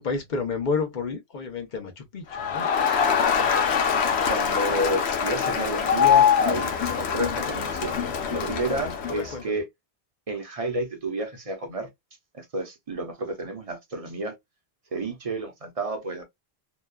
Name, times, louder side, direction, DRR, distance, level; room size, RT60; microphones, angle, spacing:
voice 1, 0.0-2.7 9.2-9.6, left 4 dB, 50° left, 0.9 m, -30 dB
Crowd, 2.3-9.3, left 7 dB, 80° left, 0.9 m, -23 dB
voice 2, 4.2-9.7 10.3-11.9 12.3-14.4 14.9-16.2, right 1 dB, 40° right, 0.7 m, -31 dB
2.9 x 2.2 x 2.2 m
omnidirectional pair, 1.1 m